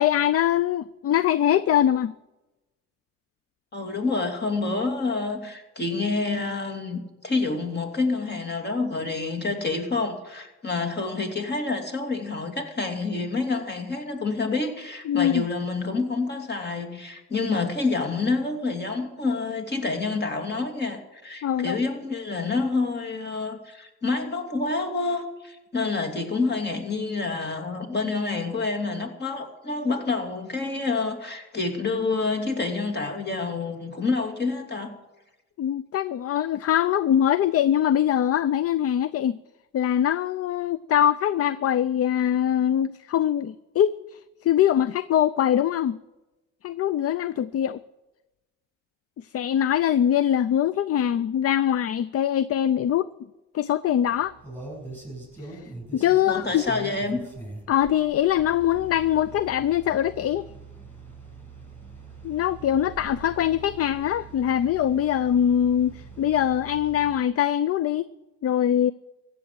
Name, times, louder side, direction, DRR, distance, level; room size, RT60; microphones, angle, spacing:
voice 1, 0.0-2.1 15.1-15.5 21.4-21.8 35.6-39.4 39.7-46.0 46.6-47.8 49.2-53.1 53.5-54.4 55.4-56.6 57.7-60.5 62.2-68.1 68.4-68.9, left 10 dB, 50° left, 17 dB, 0.5 m, -23 dB
voice 2, 3.7-34.9 56.2-57.2, left 3 dB, 35° left, 3 dB, 2.8 m, -28 dB
sound 1, 54.1-67.2, right 3 dB, 5° left, 6.7 m, -43 dB
15.5 x 7.6 x 10.0 m, 1.0 s
cardioid pair, 90°, 30 cm